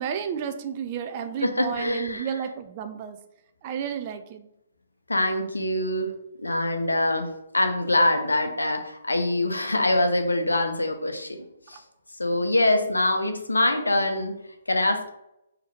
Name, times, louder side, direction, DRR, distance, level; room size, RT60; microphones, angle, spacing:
voice 1, 0.0-3.2 3.6-4.5, right 8 dB, 35° right, 8 dB, 0.3 m, -32 dB
voice 2, 1.4-2.3 5.1-6.1 6.4-11.8 12.2-14.4 14.7-15.1, left 1 dB, 75° left, 6 dB, 0.5 m, -24 dB
3.7 x 2.8 x 3.0 m, 0.84 s
figure-of-eight pair, 130°, 0 cm